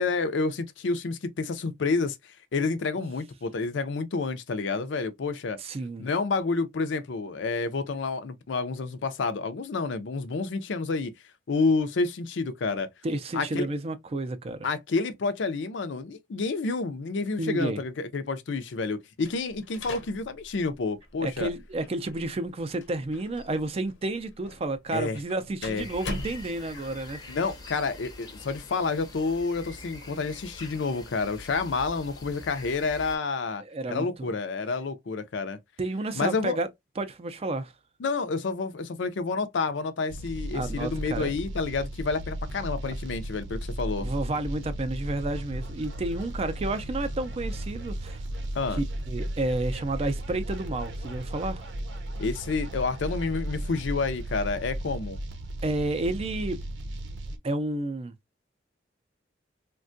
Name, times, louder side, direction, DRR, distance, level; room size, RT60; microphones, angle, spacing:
voice 1, 0.0-2.2 2.5-5.6 6.0-11.1 11.5-12.9 13.3-13.7 14.6-21.5 24.9-25.2 25.6-25.9 27.3-33.6 33.9-35.6 36.1-36.6 38.0-44.1 48.5-48.8 52.2-55.2, left 4 dB, 70° left, 0.5 m, -29 dB
voice 2, 5.6-6.1 13.0-14.7 17.4-17.8 21.2-27.2 33.6-34.3 35.8-36.7 37.0-37.7 40.5-41.3 42.8-42.9 44.0-48.2 48.8-51.7 55.6-56.6 57.4-58.1, right 2 dB, 30° right, 0.4 m, -31 dB
sound 1, 19.2-27.0, left 2 dB, 85° left, 0.8 m, -43 dB
sound 2, 25.7-33.2, left 2 dB, 20° left, 0.6 m, -44 dB
sound 3, 40.1-57.4, right 1 dB, 70° right, 0.6 m, -35 dB
3.5 x 2.2 x 2.5 m
head